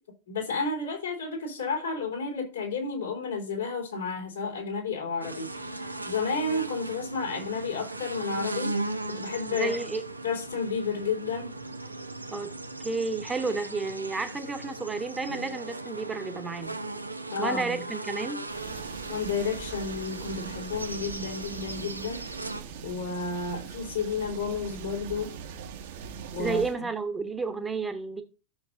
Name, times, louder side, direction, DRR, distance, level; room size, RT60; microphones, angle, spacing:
voice 1, 0.3-5.8 6.0-8.7 9.2-9.7 10.2-11.5 17.3-17.8 19.1-22.2 22.8-25.3 26.3-26.6, left 4 dB, 70° left, 3.9 m, -31 dB
sound 1, 5.2-22.6, right 2 dB, 85° right, 0.7 m, -38 dB
voice 2, 9.5-10.0 12.3-12.6 12.8-16.8 17.4-18.5 26.4-28.2, right 4 dB, 10° right, 1.2 m, -31 dB
sound 2, 18.5-26.8, right 7 dB, 55° right, 1.3 m, -42 dB
13.0 x 6.5 x 2.7 m
figure-of-eight pair, 90°, 0 cm